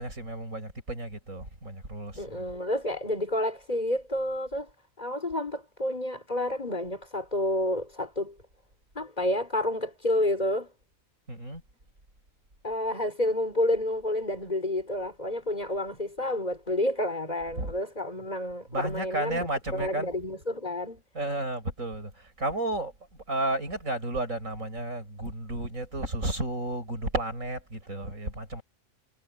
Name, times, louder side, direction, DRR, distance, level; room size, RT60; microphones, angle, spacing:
voice 1, 0.0-2.2 11.3-11.6 17.6-17.7 18.7-20.1 21.1-22.1 22.4-22.9 23.3-28.6, right 1 dB, 70° right, 8.2 m, -32 dB
voice 2, 2.2-4.7 5.0-8.3 8.9-10.7 12.6-21.0, left 1 dB, 30° left, 4.9 m, -30 dB
omnidirectional pair, 1.4 m